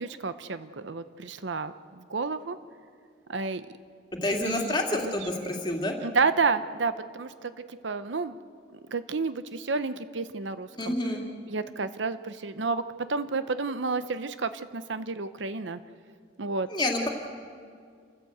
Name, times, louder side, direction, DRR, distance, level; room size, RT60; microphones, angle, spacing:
voice 1, 0.0-2.6 3.3-3.7 4.4-5.3 6.0-7.5 7.8-8.4 8.9-11.0 11.5-12.8 13.1-15.8 16.4-16.7, right 4 dB, 75° right, 12 dB, 0.8 m, -30 dB
voice 2, 4.2-5.9 10.8-11.2 16.7-17.1, left 1 dB, 25° left, 1 dB, 2.5 m, -28 dB
28.5 x 14.5 x 7.9 m, 2.1 s
head